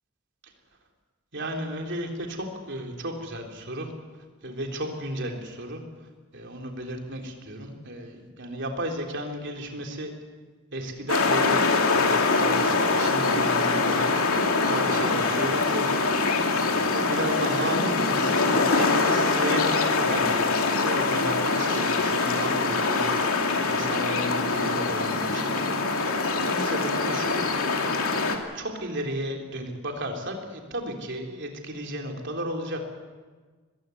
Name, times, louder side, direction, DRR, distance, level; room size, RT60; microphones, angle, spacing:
voice 1, 1.3-3.9 4.4-5.8 6.3-10.1 10.7-11.6 11.9-16.3 16.6-23.1 23.7-25.9 26.1-27.4 28.5-32.9, right 1 dB, 55° right, 2 dB, 3.7 m, -34 dB
sound 1, 11.1-28.4, left 3 dB, 80° left, 2.6 m, -24 dB
21.0 x 16.0 x 9.8 m, 1.4 s
head